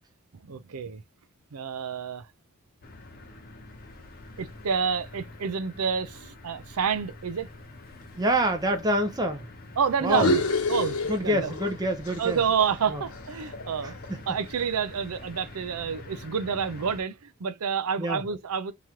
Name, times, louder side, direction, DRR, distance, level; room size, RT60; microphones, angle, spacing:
voice 1, 0.4-1.0 1.5-2.3 4.4-7.5 9.8-10.4 10.7-11.5 12.2-14.0 14.3-18.7, right 6 dB, 85° right, 0.5 m, -28 dB
sound 1, 2.8-17.0, left 2 dB, 40° left, 0.8 m, -46 dB
voice 2, 8.2-9.5 10.0-10.3 11.1-12.4 12.9-13.0 13.8-14.2 18.0-18.2, right 1 dB, 15° right, 0.6 m, -26 dB
sound 2, 10.0-11.8 12.1-14.3, left 2 dB, 80° left, 1.1 m, -29 dB
3.1 x 3.0 x 3.6 m
head